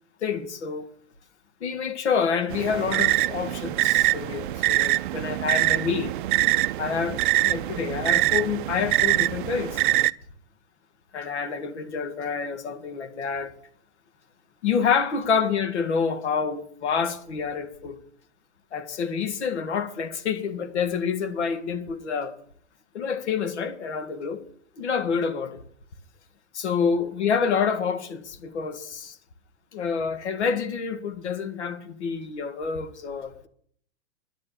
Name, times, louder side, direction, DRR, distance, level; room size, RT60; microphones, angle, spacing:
voice 1, 0.2-0.9 1.6-6.1 6.8-9.8 11.1-13.5 14.6-18.0 18.7-22.3 22.9-24.4 24.8-25.6 26.5-29.2 29.7-33.5, left 6 dB, 75° left, 1.9 m, -28 dB
sound 1, 2.5-10.1, right 17 dB, 50° right, 0.4 m, -24 dB
10.5 x 10.5 x 6.9 m
hypercardioid pair, 150°, 34 cm